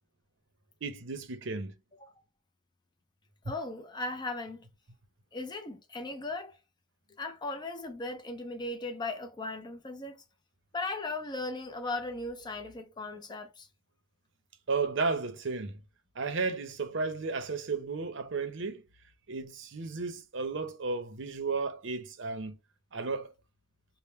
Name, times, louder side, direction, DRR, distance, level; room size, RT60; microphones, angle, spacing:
voice 1, 0.8-1.7 14.7-15.7 16.2-18.8 19.3-22.6 22.9-23.3, right 4 dB, 65° right, 0.7 m, -33 dB
voice 2, 3.5-4.6 5.3-6.5 7.2-10.2 10.7-13.7, left 2 dB, 20° left, 0.4 m, -37 dB
3.5 x 2.1 x 4.2 m
head